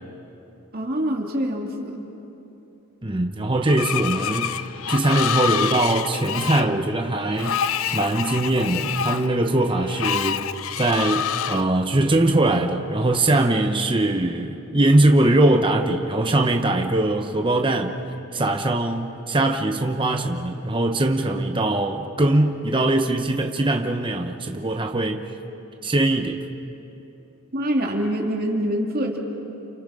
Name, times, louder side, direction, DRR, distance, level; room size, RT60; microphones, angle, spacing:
voice 1, 0.7-2.1 27.5-29.2, equal, 40° right, 2.5 m, -25 dB
voice 2, 3.0-7.6 7.9-10.5 10.8-17.9 18.3-25.3 25.8-26.4, right 2 dB, 20° right, 0.9 m, -21 dB
Screech, 3.7-11.6, left 8 dB, 65° left, 0.5 m, -27 dB
30.0 x 27.5 x 5.0 m
head